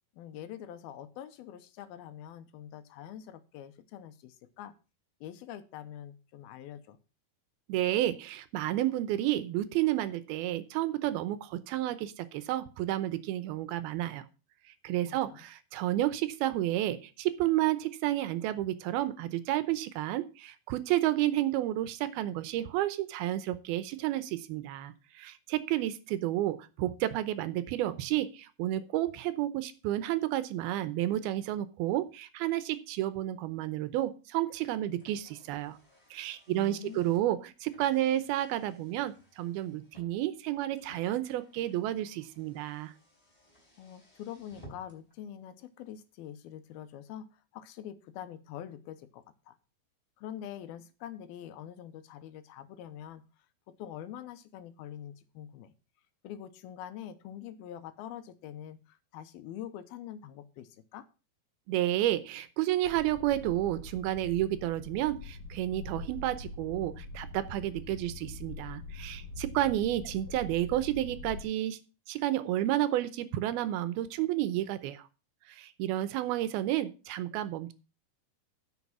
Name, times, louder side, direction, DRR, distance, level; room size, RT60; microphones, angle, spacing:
voice 1, 0.2-4.7 5.2-7.0 15.1-15.4 36.5-37.2 43.8-47.3 47.5-49.6 50.2-53.2 53.8-55.7 56.2-61.1, left 10 dB, 85° left, 11 dB, 2.7 m, -45 dB
voice 2, 7.7-14.2 14.8-35.8 36.1-42.9 61.7-71.8 72.1-75.0 75.5-77.7, right 14 dB, 85° right, 13 dB, 2.8 m, -31 dB
Car, 34.9-45.2, equal, 10° left, 3.7 m, -59 dB
sound 1, 62.8-71.4, left 3 dB, 30° left, 5.0 m, -44 dB
9.6 x 6.5 x 6.0 m, 0.32 s
omnidirectional pair, 4.3 m